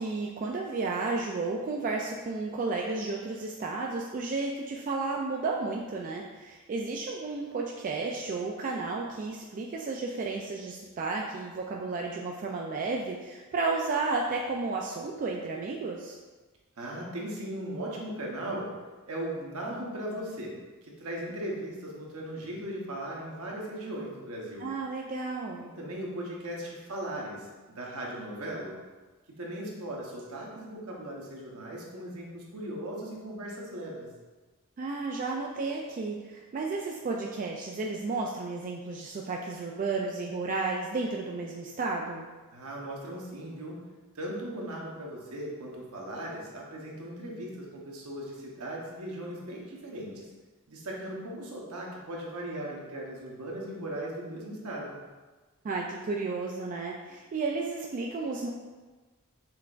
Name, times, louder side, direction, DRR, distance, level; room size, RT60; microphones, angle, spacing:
voice 1, 0.0-16.2 24.6-25.7 34.8-42.3 55.6-58.5, right 3 dB, 35° right, -1 dB, 0.3 m, -32 dB
voice 2, 16.8-18.7 19.1-20.5 21.0-24.7 25.6-28.7 29.4-34.1 42.5-43.8 44.1-50.3 50.7-55.0, right 1 dB, 70° right, -3 dB, 1.0 m, -38 dB
5.8 x 3.4 x 2.5 m, 1.3 s
head